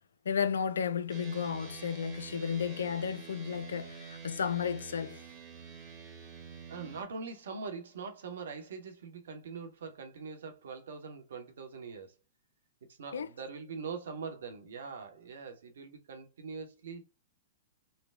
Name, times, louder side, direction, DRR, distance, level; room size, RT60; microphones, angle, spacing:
voice 1, 0.3-5.2 13.1-13.3, left 7 dB, 70° left, 0.3 m, -33 dB
sound 1, 1.1-7.0, right 6 dB, 30° right, 1.1 m, -47 dB
voice 2, 6.7-12.1 12.9-17.1, right 5 dB, 65° right, 0.9 m, -43 dB
3.3 x 2.2 x 3.4 m
figure-of-eight pair, 105°, 0 cm